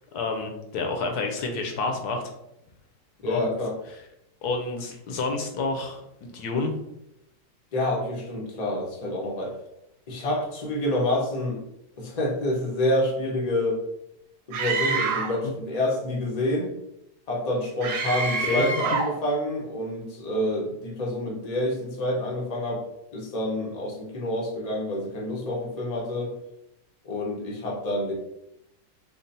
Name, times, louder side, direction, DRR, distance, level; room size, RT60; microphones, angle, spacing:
voice 1, 0.0-2.2 3.2-3.4 4.4-6.7 18.1-18.2 18.4-18.6, left 3 dB, 70° left, 4 dB, 1.0 m, -29 dB
voice 2, 3.2-3.7 7.7-9.5 10.1-11.6 12.0-13.8 14.5-16.7 17.3-22.8 23.1-26.3 27.0-28.1, left 1 dB, 55° left, -2 dB, 0.4 m, -28 dB
Screaming, 14.5-15.4 17.8-19.2, right 4 dB, 90° right, 1.4 m, -27 dB
3.7 x 2.0 x 4.0 m, 0.82 s
omnidirectional pair, 1.9 m